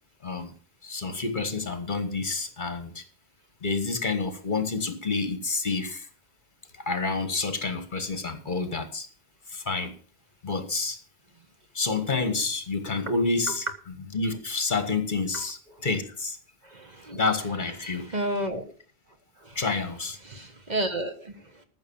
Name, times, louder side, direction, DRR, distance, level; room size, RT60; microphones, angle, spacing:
voice 1, 0.2-0.5 0.8-3.0 3.6-6.1 6.9-9.1 9.5-9.9 10.4-11.0 11.7-13.6 14.1-16.4 17.1-18.1 19.5-20.2, left 4 dB, 50° left, 9 dB, 1.7 m, -28 dB
voice 2, 16.6-17.2 17.8-18.7 19.4-19.6 20.2-21.6, right 1 dB, 45° right, 6 dB, 1.5 m, -32 dB
14.0 x 6.4 x 7.1 m, 0.42 s
omnidirectional pair, 1.1 m